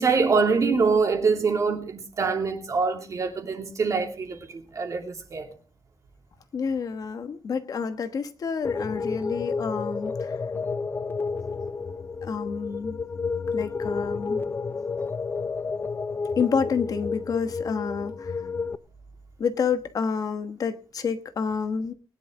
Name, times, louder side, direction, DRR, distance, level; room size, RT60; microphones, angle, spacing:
voice 1, 0.0-5.5, right 4 dB, 40° right, 2.7 m, -24 dB
voice 2, 6.5-10.4 12.2-13.0 13.5-14.4 16.4-18.4 19.4-21.9, left 6 dB, 50° left, 1.2 m, -29 dB
sound 1, 8.6-18.8, left 4 dB, 25° left, 0.6 m, -31 dB
20.5 x 10.5 x 3.8 m
wide cardioid pair, 170°, 8 cm